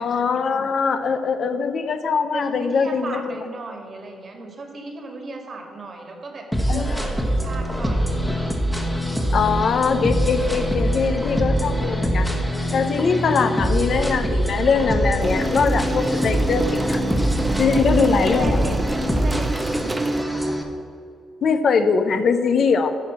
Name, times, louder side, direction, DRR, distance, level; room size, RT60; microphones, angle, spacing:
voice 1, 0.0-3.4 6.7-7.0 9.3-12.3 12.7-17.0 17.6-18.6 21.4-22.9, left 5 dB, 55° left, 8 dB, 0.7 m, -21 dB
voice 2, 2.3-8.2 17.7-18.1 18.3-18.8 19.2-20.4, right 2 dB, 45° right, 3 dB, 1.8 m, -35 dB
sound 1, 6.5-20.6, equal, ahead, 1.2 m, -23 dB
sound 2, 15.2-20.2, right 2 dB, 20° right, 0.6 m, -28 dB
11.5 x 4.5 x 7.4 m, 2.3 s
cardioid pair, 90°, 0 cm